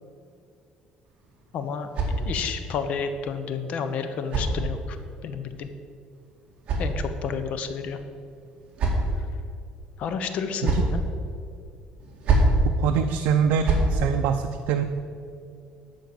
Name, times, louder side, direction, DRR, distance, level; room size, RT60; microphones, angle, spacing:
sound 1, 1.1-2.7 3.7-5.1 6.1-7.5 8.3-9.3 10.3-11.0 12.0-12.6 13.4-13.9, right 2 dB, 40° right, 2.0 m, -27 dB
voice 1, 1.5-5.0 5.2-5.7 6.8-8.0 9.2-9.3 10.0-11.0, left 6 dB, 50° left, 9 dB, 0.8 m, -31 dB
voice 2, 12.8-14.8, right 7 dB, 85° right, 5 dB, 0.5 m, -24 dB
12.0 x 4.6 x 8.1 m, 2.4 s
cardioid pair, 160°, 3 cm